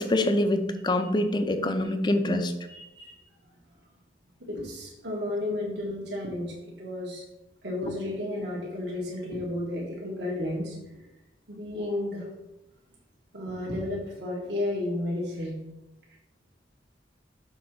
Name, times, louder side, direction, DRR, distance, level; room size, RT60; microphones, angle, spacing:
voice 1, 0.0-2.5, left 1 dB, 25° left, 7 dB, 0.5 m, -25 dB
voice 2, 2.7-3.2 4.4-7.2 7.6-11.0 11.5-12.3 13.3-15.5, left 1 dB, 65° right, -4 dB, 1.6 m, -32 dB
6.3 x 3.9 x 5.9 m, 0.95 s
head